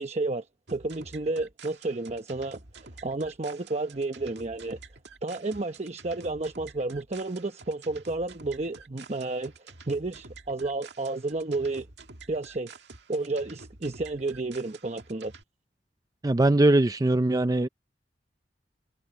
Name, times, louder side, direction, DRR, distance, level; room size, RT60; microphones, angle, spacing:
voice 1, 0.0-2.6 3.0-4.8 5.2-11.9 12.3-12.7 13.1-15.3, right 2 dB, 40° right, 1.0 m, -31 dB
sound 1, 0.7-15.4, right 4 dB, 70° right, 2.1 m, -49 dB
voice 2, 16.2-17.7, right 2 dB, 20° right, 0.5 m, -21 dB
head